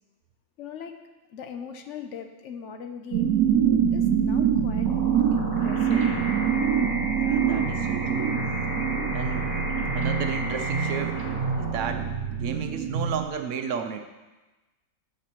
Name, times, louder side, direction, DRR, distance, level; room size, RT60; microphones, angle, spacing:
voice 1, 0.6-1.0 1.3-3.3 3.9-4.9 5.3-6.0 8.7-8.9, left 7 dB, 65° left, 6 dB, 0.9 m, -39 dB
sound 1, 3.1-13.3, right 8 dB, 90° right, 1.1 m, -25 dB
sound 2, 4.8-11.8, equal, 20° left, 0.7 m, -37 dB
sound 3, 5.9-10.9, left 1 dB, 40° left, 1.6 m, -35 dB
voice 2, 7.1-8.4 9.1-9.5 9.9-14.0, right 7 dB, 70° right, 6 dB, 0.9 m, -33 dB
13.5 x 4.9 x 3.0 m, 1.1 s
omnidirectional pair, 1.5 m